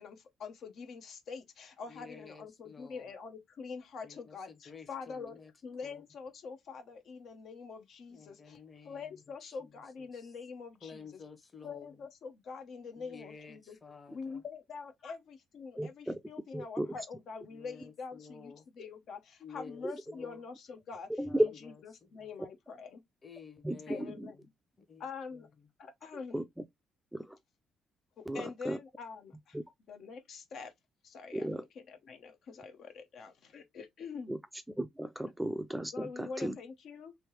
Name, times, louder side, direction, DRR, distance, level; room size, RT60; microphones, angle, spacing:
voice 1, 0.0-8.6 8.8-11.1 11.6-13.8 14.1-21.1 21.4-21.5 22.1-23.0 23.9-24.4 25.0-25.5 25.8-26.4 28.2-29.6 29.9-30.7 31.0-34.3 35.9-37.2, left 5 dB, 70° left, 0.8 m, -45 dB
voice 2, 1.9-3.1 4.0-5.5 5.8-6.0 8.1-9.7 10.0-10.3 10.8-12.0 12.9-14.4 15.0-15.1 17.5-18.6 19.4-20.4 21.3-21.7 22.0-22.3 23.2-24.5 24.9-25.1 25.3-25.5, left 5 dB, 35° left, 1.0 m, -52 dB
voice 3, 15.8-16.2 16.5-16.9 19.8-20.0 21.2-21.5 23.6-24.3 26.3-26.4 27.1-27.4 28.3-28.8 29.5-29.6 31.3-31.6 34.3-34.4 34.8-36.5, right 1 dB, 5° right, 0.4 m, -34 dB
3.3 x 2.7 x 3.0 m
cardioid pair, 90°, 0 cm